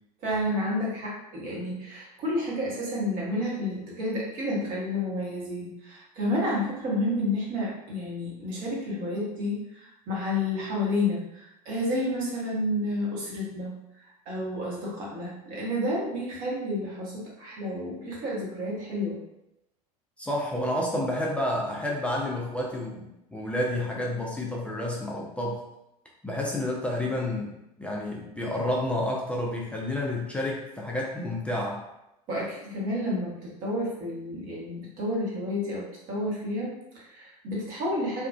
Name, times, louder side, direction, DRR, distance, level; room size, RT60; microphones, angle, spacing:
voice 1, 0.2-13.7 14.3-19.2 32.3-38.3, left 1 dB, 45° right, -5 dB, 1.1 m, -30 dB
voice 2, 20.2-25.6 26.2-31.8, left 1 dB, 5° left, -3 dB, 0.4 m, -30 dB
2.8 x 2.3 x 2.2 m, 0.86 s
figure-of-eight pair, 75°, 20 cm